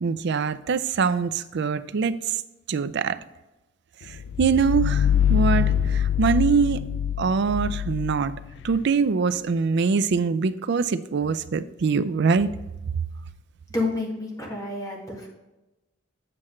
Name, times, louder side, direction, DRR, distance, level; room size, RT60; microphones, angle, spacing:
voice 1, 0.0-2.2 2.7-3.2 4.1-6.8 7.2-8.3 8.6-12.5, right 5 dB, 60° right, 13 dB, 0.4 m, -23 dB
sound 1, 4.1-8.8, left 9 dB, 60° left, 0.3 m, -24 dB
voice 2, 13.7-15.3, left 2 dB, 20° left, -1 dB, 1.8 m, -29 dB
7.7 x 7.5 x 3.2 m, 1.0 s
head